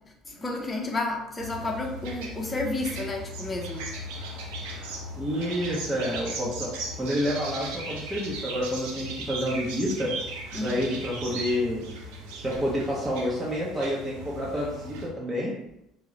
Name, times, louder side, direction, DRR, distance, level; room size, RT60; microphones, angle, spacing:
voice 1, 0.3-3.9 10.5-10.9, left 2 dB, 25° left, 1 dB, 0.7 m, -31 dB
sound 1, 1.4-15.1, right 1 dB, 65° right, 0.6 m, -37 dB
voice 2, 5.2-6.7 7.0-10.1 10.6-11.9 12.4-15.5, equal, 15° right, -6 dB, 0.9 m, -29 dB
3.5 x 2.1 x 3.1 m, 0.84 s
figure-of-eight pair, 60°, 0 cm